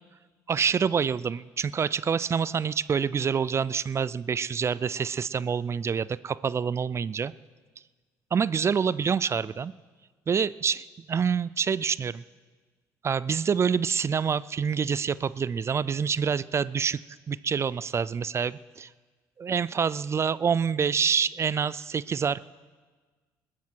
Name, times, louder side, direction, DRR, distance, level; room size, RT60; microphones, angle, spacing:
voice 1, 0.5-7.3 8.3-9.7 10.3-12.2 13.0-17.0 17.3-18.9 19.4-22.4, right 6 dB, 35° right, 19 dB, 0.4 m, -27 dB
20.5 x 13.5 x 4.6 m, 1.4 s
supercardioid pair, 70°, 8 cm